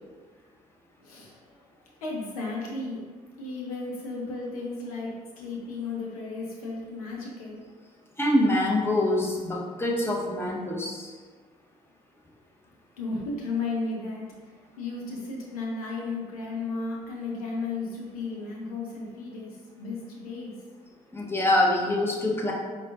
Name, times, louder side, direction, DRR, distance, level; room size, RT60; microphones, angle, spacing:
voice 1, 1.0-3.0 3.4-7.6 13.0-20.6, left 3 dB, 85° left, -2 dB, 0.7 m, -34 dB
voice 2, 8.2-11.1 21.1-22.5, left 1 dB, 15° left, -2 dB, 1.0 m, -25 dB
4.3 x 3.7 x 2.5 m, 1.5 s
figure-of-eight pair, 45°, 18 cm